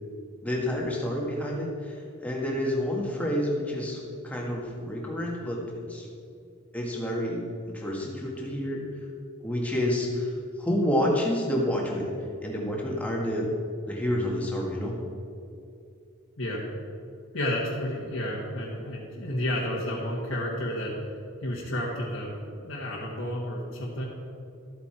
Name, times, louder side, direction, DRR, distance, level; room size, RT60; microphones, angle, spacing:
voice 1, 0.4-6.1 6.7-8.8 9.4-10.3 10.6-12.1 12.4-13.5 13.9-15.0, left 1 dB, 5° left, -2 dB, 1.9 m, -29 dB
voice 2, 17.3-20.9 21.4-24.0, left 1 dB, 75° left, -6 dB, 1.8 m, -31 dB
13.5 x 8.5 x 4.5 m, 2.5 s
head